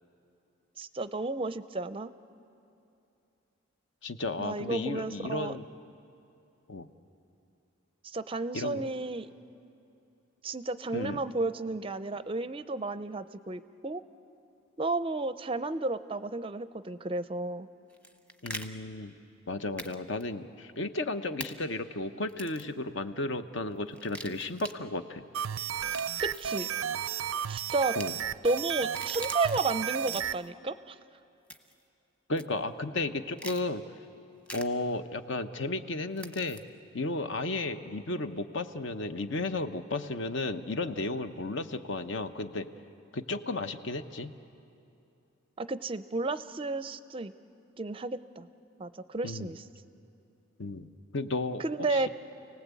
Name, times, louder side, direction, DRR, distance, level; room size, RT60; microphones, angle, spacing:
voice 1, 0.8-2.1 4.4-5.6 8.0-9.3 10.4-14.0 14.8-17.7 26.2-26.7 27.5-28.0 28.4-31.0 45.6-47.3 47.8-48.5 48.8-49.6 51.6-52.1, right 3 dB, 25° right, 13 dB, 0.5 m, -32 dB
voice 2, 4.0-5.7 6.7-6.9 8.5-8.9 10.9-11.2 18.4-19.1 19.5-25.2 28.0-28.1 32.3-33.8 34.5-36.6 36.9-42.7 43.1-44.3 49.2-49.5 50.6-50.9 51.1-51.6 51.9-52.1, left 2 dB, 65° left, 9 dB, 0.9 m, -33 dB
sound 1, 17.9-18.7 19.8-19.9 20.2-20.3 21.4-21.5 22.3-22.7 23.9-24.7 25.7-26.6 27.8-28.1 28.8-29.6 30.0-30.5 31.5-31.8 32.4-32.5 33.4-33.6 34.5-34.6 36.2-36.6, right 1 dB, 5° left, 0.9 m, -43 dB
sound 2, 25.3-30.4, right 9 dB, 90° right, 0.5 m, -33 dB
sound 3, 25.8-27.4, left 2 dB, 30° left, 1.5 m, -58 dB
30.0 x 18.5 x 8.3 m, 2.8 s
head